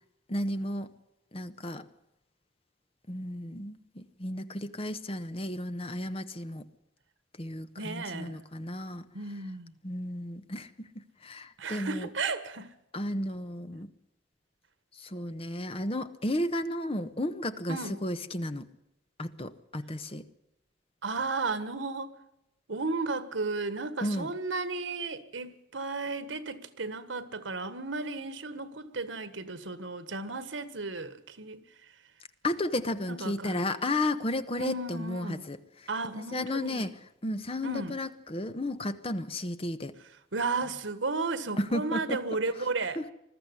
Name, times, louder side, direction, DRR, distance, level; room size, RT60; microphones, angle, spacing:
voice 1, 0.3-0.9 1.3-1.8 3.1-6.6 7.4-9.0 9.8-12.1 12.9-13.9 15.0-18.7 19.2-20.2 24.0-24.3 32.4-35.6 36.3-36.9 37.2-39.9 41.6-42.2 43.0-43.1, left 1 dB, 30° left, 1.1 m, -33 dB
voice 2, 7.8-8.4 9.1-9.7 11.6-12.7 17.7-18.0 21.0-22.1 22.7-31.6 33.1-33.7 34.6-35.5 35.9-36.9 37.6-38.0 40.3-43.0, right 3 dB, 90° right, 1.6 m, -34 dB
21.0 x 13.5 x 9.9 m
head